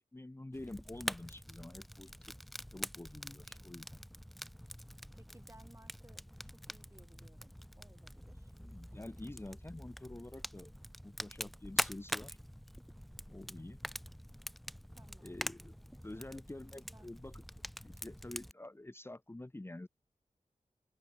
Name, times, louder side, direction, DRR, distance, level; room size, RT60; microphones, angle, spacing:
voice 1, 0.0-2.3 2.7-4.0 8.6-10.7 11.0-12.4 13.3-13.8 15.2-15.7 16.0-17.4 17.8-19.9, left 1 dB, 20° left, 1.2 m, -48 dB
Fire, 0.5-18.5, equal, ahead, 0.4 m, -45 dB
voice 2, 5.1-8.5 14.9-15.4 16.0-16.1 16.7-17.1, right 1 dB, 20° right, 6.6 m, -62 dB
open air
wide cardioid pair, 80°, 13 cm